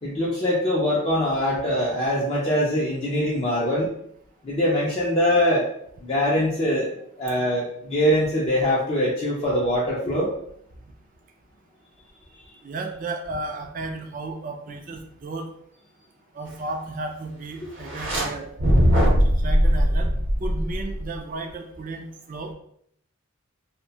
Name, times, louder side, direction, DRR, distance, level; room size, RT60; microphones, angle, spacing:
voice 1, 0.0-3.9 4.4-5.7 6.0-6.9 7.2-10.3, equal, 25° left, -5 dB, 0.4 m, -23 dB
voice 2, 12.6-15.5 16.4-18.5 19.2-20.1 20.4-22.5, right 2 dB, 40° right, 4 dB, 0.3 m, -33 dB
sound 1, 17.8-18.2 18.6-21.2, equal, 60° right, 0.8 m, -20 dB
2.6 x 2.1 x 2.7 m, 0.68 s
head